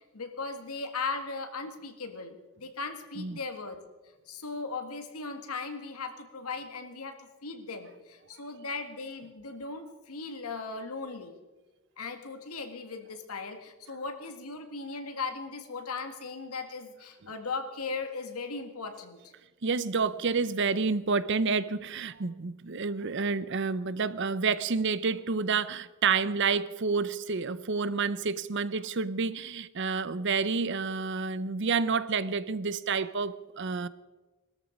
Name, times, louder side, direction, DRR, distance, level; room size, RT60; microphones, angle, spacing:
voice 1, 0.0-3.8 4.3-11.4 12.0-19.3, left 4 dB, 85° left, 1.9 m, -38 dB
voice 2, 19.6-33.9, right 5 dB, 55° right, 0.7 m, -29 dB
20.5 x 13.5 x 5.2 m
head